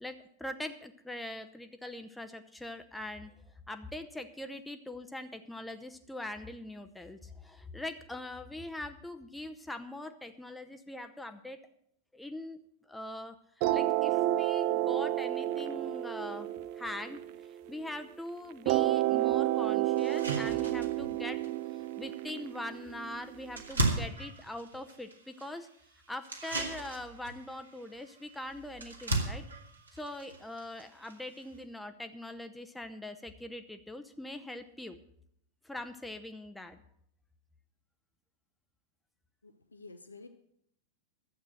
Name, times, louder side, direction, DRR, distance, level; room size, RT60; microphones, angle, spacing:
voice 1, 0.0-11.6 12.1-12.6 12.9-13.4 13.7-16.5 16.7-21.4 21.7-25.7 26.1-29.4 29.9-35.0 35.6-36.8, left 1 dB, 5° left, 7 dB, 0.7 m, -42 dB
sound 1, 13.6-18.0 18.7-23.6, right 15 dB, 45° right, 0.4 m, -31 dB
sound 2, 18.9-19.0 19.5-19.6 20.0-31.6, right 2 dB, 75° right, 2.0 m, -38 dB
voice 2, 39.4-40.3, left 3 dB, 80° left, 7 dB, 0.7 m, -50 dB
11.5 x 8.0 x 7.7 m, 0.70 s
figure-of-eight pair, 90°, 0 cm